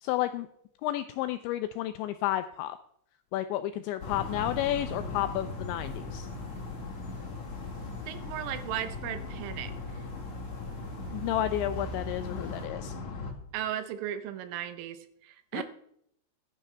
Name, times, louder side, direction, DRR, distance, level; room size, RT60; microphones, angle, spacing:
voice 1, 0.0-0.5 0.8-2.8 3.3-6.3 11.1-12.9 15.5-15.6, left 13 dB, 85° left, 10 dB, 2.6 m, -31 dB
sound 1, 4.0-13.3, left 3 dB, 50° left, 2.4 m, -39 dB
sound 2, 4.0-12.6, right 4 dB, 65° right, 3.3 m, -46 dB
voice 2, 8.1-9.7 13.5-15.0 15.2-15.6, right 11 dB, 85° right, 10 dB, 3.4 m, -36 dB
15.0 x 11.0 x 3.4 m, 0.71 s
omnidirectional pair, 5.7 m